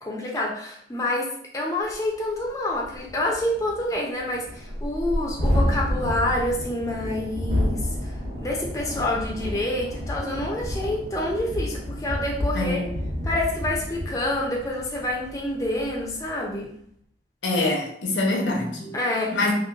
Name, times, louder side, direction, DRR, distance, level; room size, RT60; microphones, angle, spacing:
voice 1, 0.0-1.3 1.5-8.2 8.4-12.8 13.2-16.7 18.8-19.5, left 1 dB, 20° left, -2 dB, 0.4 m, -27 dB
Thunderstorm, 1.9-2.0 2.4-2.5 2.8-16.4, equal, 65° right, 0.9 m, -30 dB
voice 2, 12.5-12.9 17.4-18.9 19.3-19.5, left 2 dB, 85° left, -1 dB, 0.6 m, -24 dB
2.9 x 2.0 x 2.3 m, 0.67 s
head